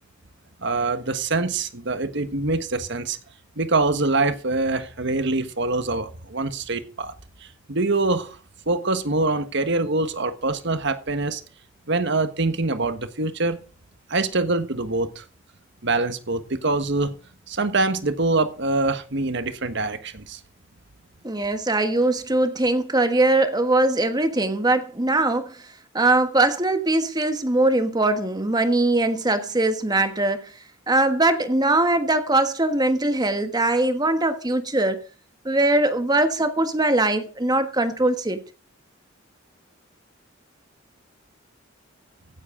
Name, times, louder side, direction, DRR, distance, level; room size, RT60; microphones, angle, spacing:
voice 1, 0.6-3.2 3.6-7.1 7.7-8.4 8.7-11.4 11.9-13.6 14.1-15.2 15.8-17.1 17.5-20.4, right 3 dB, 60° right, 1.4 m, -24 dB
voice 2, 21.2-25.6 25.9-30.5 30.9-35.0 35.4-38.4, right 2 dB, 20° right, 1.3 m, -21 dB
16.0 x 9.7 x 3.8 m
head